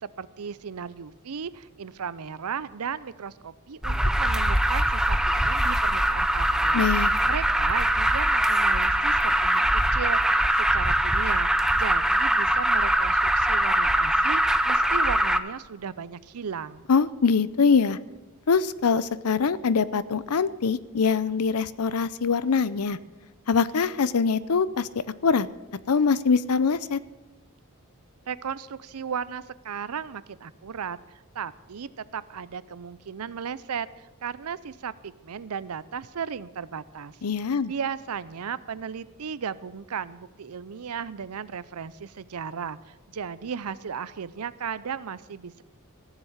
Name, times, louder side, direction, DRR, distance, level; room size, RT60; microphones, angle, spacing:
voice 1, 0.0-5.2 5.4-6.9 7.3-16.9 28.3-31.0 31.3-37.2 37.7-45.6, right 7 dB, 85° right, 17 dB, 0.6 m, -35 dB
Alarm, 3.8-15.4, right 1 dB, 5° right, 0.5 m, -22 dB
voice 2, 6.7-7.1 16.9-18.0 18.5-23.0 23.5-24.9 25.2-25.5 25.9-27.0 37.2-37.7, left 5 dB, 85° left, 17 dB, 0.6 m, -23 dB
15.0 x 7.3 x 8.0 m, 1.1 s
head